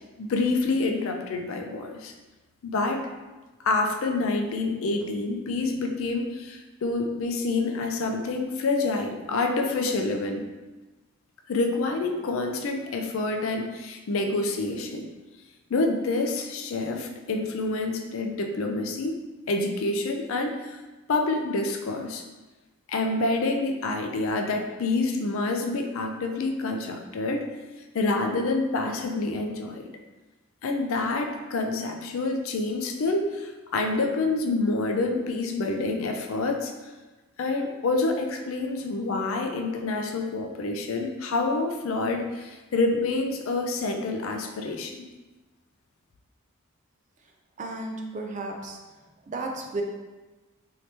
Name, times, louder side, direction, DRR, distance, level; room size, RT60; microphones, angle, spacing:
voice 1, 0.2-2.1 2.6-3.0 3.6-10.5 11.5-15.1 15.7-19.2 19.5-20.8 21.1-22.2 22.9-27.5 27.9-29.8 30.6-36.7 37.4-45.0, left 3 dB, 65° left, 4 dB, 0.4 m, -27 dB
voice 2, 47.6-48.8 49.3-49.8, right 2 dB, 35° right, 2 dB, 0.3 m, -33 dB
3.3 x 2.8 x 2.8 m, 1.2 s
head